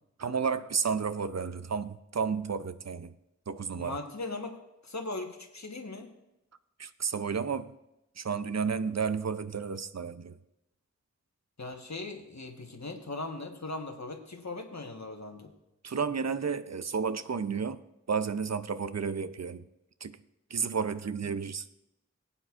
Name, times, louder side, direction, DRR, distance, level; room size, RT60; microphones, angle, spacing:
voice 1, 0.2-3.1 3.5-4.0 6.8-7.7 8.2-10.4 15.8-17.8 18.1-19.6 20.0-20.2 20.5-21.7, right 6 dB, 65° right, 13 dB, 0.6 m, -32 dB
voice 2, 3.8-6.1 11.6-15.5, left 2 dB, 65° left, 4 dB, 1.3 m, -39 dB
20.0 x 8.8 x 2.5 m, 0.89 s
wide cardioid pair, 40°, 29 cm